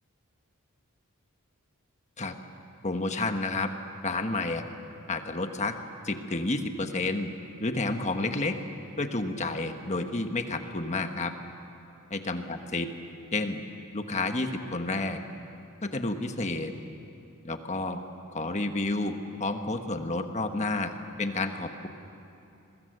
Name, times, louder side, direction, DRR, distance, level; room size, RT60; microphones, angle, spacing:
voice 1, 2.8-3.7 4.0-4.6 5.1-5.7 6.0-7.3 7.6-8.6 9.0-11.3 12.1-12.9 13.3-13.6 13.9-15.2 15.8-16.7 17.4-18.0 18.3-20.9 21.2-21.9, left 2 dB, 30° left, 6 dB, 1.4 m, -30 dB
28.0 x 21.5 x 8.0 m, 2.8 s
head